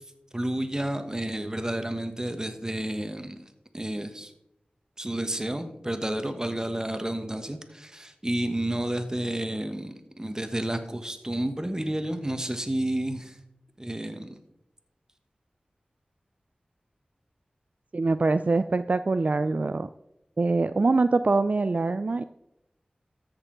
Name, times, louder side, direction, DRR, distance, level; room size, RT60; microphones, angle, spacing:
voice 1, 0.3-3.4 3.7-4.3 5.0-13.3 13.8-14.4, right 1 dB, 20° right, 8 dB, 1.2 m, -31 dB
voice 2, 17.9-19.9 20.4-22.2, right 3 dB, 55° right, 11 dB, 0.3 m, -24 dB
13.5 x 6.6 x 3.9 m, 0.85 s
wide cardioid pair, 45°, 3 cm